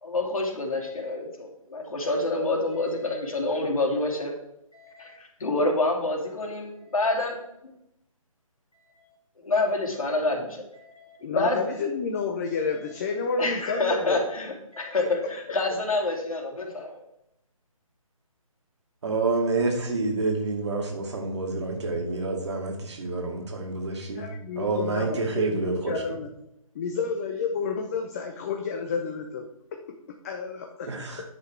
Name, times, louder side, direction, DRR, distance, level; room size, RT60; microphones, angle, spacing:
voice 1, 0.0-4.3 4.7-7.3 9.4-11.6 13.4-17.0, left 2 dB, 75° left, 1 dB, 2.9 m, -27 dB
voice 2, 11.2-14.3 24.2-26.3 26.7-29.5 30.2-30.9, left 5 dB, 25° left, 3 dB, 0.9 m, -30 dB
voice 3, 19.0-24.3 24.6-26.0 30.9-31.2, right 3 dB, 55° right, 2 dB, 2.3 m, -28 dB
10.0 x 5.7 x 4.7 m, 0.81 s
figure-of-eight pair, 150°, 18 cm